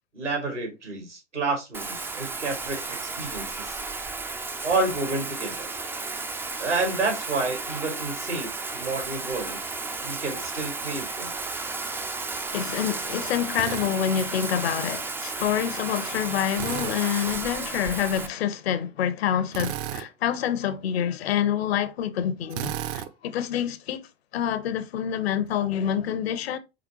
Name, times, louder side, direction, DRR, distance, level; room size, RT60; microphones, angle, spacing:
voice 1, 0.1-3.8 4.6-5.7 6.6-9.6 10.0-11.3, right 3 dB, 85° right, 2.3 m, -30 dB
Bathtub (filling or washing), 1.7-18.3, right 3 dB, 5° right, 0.3 m, -33 dB
voice 2, 12.5-24.1 24.3-26.6, left 9 dB, 60° left, 0.8 m, -27 dB
Drill, 13.5-13.9 16.5-17.0 19.5-20.1 22.5-23.1, right 10 dB, 50° right, 0.7 m, -32 dB
5.0 x 3.5 x 3.0 m
figure-of-eight pair, 80°, 35 cm